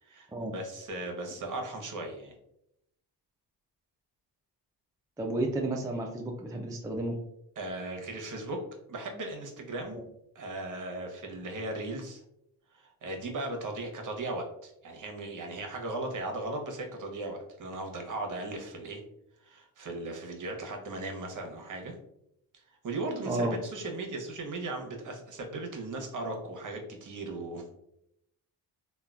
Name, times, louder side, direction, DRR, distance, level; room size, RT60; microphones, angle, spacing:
voice 1, 0.0-2.3 7.6-8.6 8.9-10.0 10.3-12.2 12.7-19.0 19.4-21.9 22.8-27.7, right 2 dB, 45° right, 2 dB, 0.9 m, -37 dB
voice 2, 5.2-7.2 9.8-10.0 23.3-23.6, right 2 dB, 10° right, 0 dB, 0.4 m, -32 dB
3.0 x 2.3 x 2.4 m, 0.79 s
supercardioid pair, 65°, 44 cm